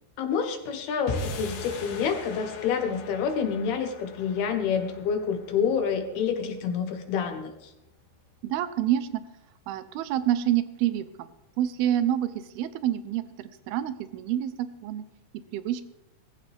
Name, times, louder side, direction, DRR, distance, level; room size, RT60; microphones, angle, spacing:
voice 1, 0.2-7.7, left 6 dB, 70° left, 6 dB, 3.0 m, -28 dB
sound 1, 1.1-7.4, left 3 dB, 90° left, 4.1 m, -40 dB
voice 2, 8.4-9.2 9.7-11.3 11.6-15.0 15.5-15.8, right 11 dB, 75° right, 13 dB, 2.5 m, -28 dB
19.5 x 15.0 x 3.5 m, 0.90 s
omnidirectional pair, 5.0 m